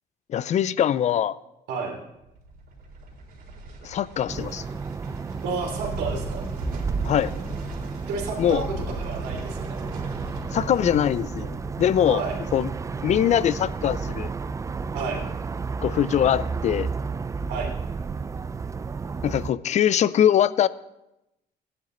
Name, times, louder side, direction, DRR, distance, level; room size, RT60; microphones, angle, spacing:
voice 1, 0.3-1.4 3.8-4.6 7.0-7.3 8.4-8.6 10.5-12.2 12.5-12.7 13.0-14.3 15.8-16.9 19.2-20.7, left 10 dB, 45° left, 18 dB, 0.5 m, -22 dB
sound 1, 2.2-15.4 15.7-15.8, right 1 dB, 65° right, 4.0 m, -40 dB
sound 2, 4.3-19.5, right 5 dB, 20° right, 0.4 m, -32 dB
voice 2, 5.4-6.4 8.1-9.8 12.1-12.4 12.9-13.0 14.9-15.2 17.5-17.7, right 4 dB, 90° right, 0 dB, 3.3 m, -31 dB
15.5 x 10.5 x 3.9 m, 0.89 s
cardioid pair, 110°, 17 cm